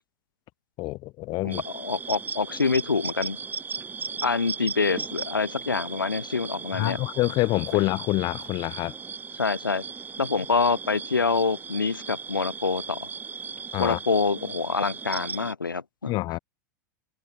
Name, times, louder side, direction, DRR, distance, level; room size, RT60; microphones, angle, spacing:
voice 1, 0.8-1.6 6.7-8.9 13.7-14.0 16.1-16.4, left 20 dB, 40° left, 2.5 m, -26 dB
voice 2, 1.4-3.4 4.2-7.0 9.4-9.8 10.2-13.1 13.8-16.1, left 4 dB, 85° left, 1.0 m, -26 dB
sound 1, 1.5-15.5, right 5 dB, 15° right, 7.1 m, -37 dB
figure-of-eight pair, 95°, 11 cm